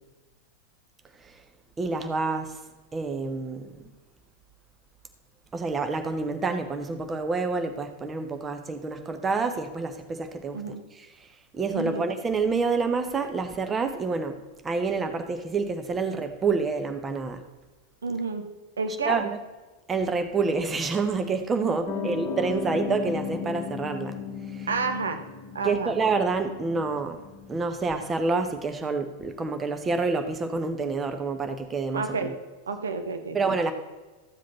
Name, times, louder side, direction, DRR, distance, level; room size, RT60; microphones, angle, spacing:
voice 1, 1.8-2.6 2.9-3.7 5.5-10.6 10.9-11.3 11.5-17.4 19.0-19.3 19.9-24.2 24.5-24.7 25.6-27.2 27.5-32.3 33.3-33.7, right 4 dB, 20° right, 7 dB, 0.9 m, -28 dB
voice 2, 11.7-12.1 18.0-18.4 18.8-19.2 21.9-22.2 24.7-25.2 25.5-25.9 31.9-32.3 32.7-33.4, right 4 dB, 70° right, 6 dB, 1.1 m, -30 dB
Piano, 21.9-28.4, left 6 dB, 25° left, 1.3 m, -36 dB
13.5 x 7.6 x 4.0 m, 1.2 s
figure-of-eight pair, 90°, 0 cm